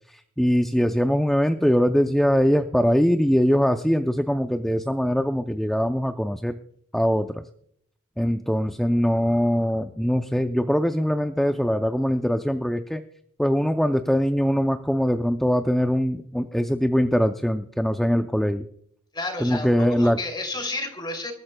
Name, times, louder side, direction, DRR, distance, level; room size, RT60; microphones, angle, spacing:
voice 1, 0.1-6.5 6.9-7.4 8.2-13.0 13.4-18.7 19.4-20.2, equal, ahead, 6 dB, 0.4 m, -22 dB
voice 2, 19.1-21.3, left 2 dB, 20° left, 5 dB, 2.7 m, -31 dB
25.5 x 13.5 x 2.2 m, 0.67 s
head